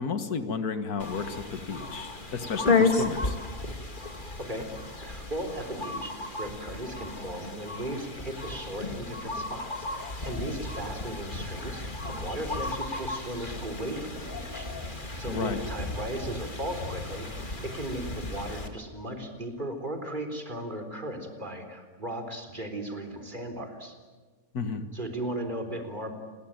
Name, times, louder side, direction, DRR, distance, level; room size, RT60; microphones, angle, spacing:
voice 1, 0.0-3.4 15.3-15.6 24.5-24.9, left 5 dB, 85° left, 9 dB, 2.1 m, -32 dB
sound 1, 1.0-18.7, left 3 dB, 35° left, 2.4 m, -33 dB
voice 2, 4.4-14.9 15.2-23.9 24.9-26.1, right 1 dB, 30° right, 6 dB, 4.2 m, -37 dB
29.5 x 21.5 x 9.2 m, 1.4 s
omnidirectional pair, 1.6 m